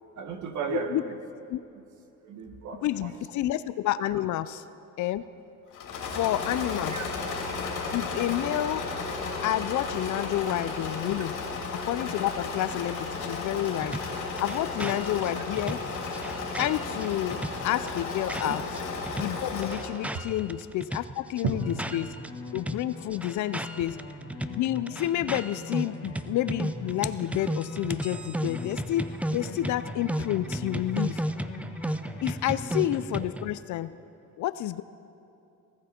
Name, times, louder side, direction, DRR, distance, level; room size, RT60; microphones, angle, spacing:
voice 1, 0.2-1.2 2.2-3.1 6.9-7.1 18.4-18.5 20.1-20.2 21.4-21.5, right 5 dB, 70° right, 6 dB, 1.4 m, -33 dB
voice 2, 0.7-1.0 1.5-1.6 2.8-4.6 5.0-5.3 6.0-7.0 7.9-8.9 9.4-11.4 11.7-15.8 16.6-18.6 19.2-22.2 22.5-24.0 24.5-31.2 32.2-34.0 34.4-34.8, left 13 dB, 75° left, 14 dB, 0.5 m, -29 dB
Engine / Mechanisms, 5.7-20.0, left 4 dB, 90° left, 2.8 m, -34 dB
sound 1, 13.8-18.8 19.1-22.3 22.6-33.5, right 1 dB, 5° right, 0.4 m, -34 dB
sound 2, 21.5-32.9, left 3 dB, 50° left, 2.3 m, -42 dB
19.0 x 14.5 x 4.4 m, 2.7 s
cardioid pair, 90°, 30 cm